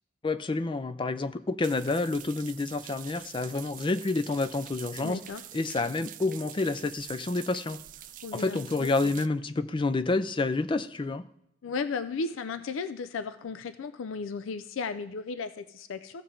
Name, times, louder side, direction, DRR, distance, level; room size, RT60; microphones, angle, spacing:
voice 1, 0.2-5.2 5.5-7.8 8.3-11.3, left 3 dB, 25° left, 12 dB, 0.4 m, -29 dB
sound 1, 1.6-9.3, right 13 dB, 45° right, 0.3 m, -46 dB
voice 2, 5.0-5.4 8.2-9.1 11.6-16.2, left 4 dB, 90° left, 11 dB, 0.4 m, -35 dB
15.5 x 5.6 x 3.7 m, 0.78 s
head